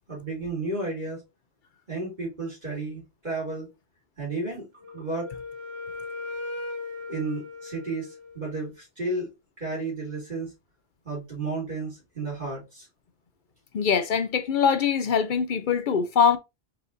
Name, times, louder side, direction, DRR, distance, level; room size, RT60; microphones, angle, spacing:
voice 1, 0.1-1.2 1.9-3.7 4.2-4.7 4.9-5.3 7.1-9.3 9.6-10.5 11.0-12.9, right 3 dB, 50° right, 2.5 m, -32 dB
Wind instrument woodwind instrument, 4.8-8.7, left 3 dB, 90° right, 1.1 m, -38 dB
voice 2, 13.7-16.4, left 6 dB, 60° left, 0.6 m, -23 dB
4.2 x 3.9 x 2.6 m
omnidirectional pair, 1.0 m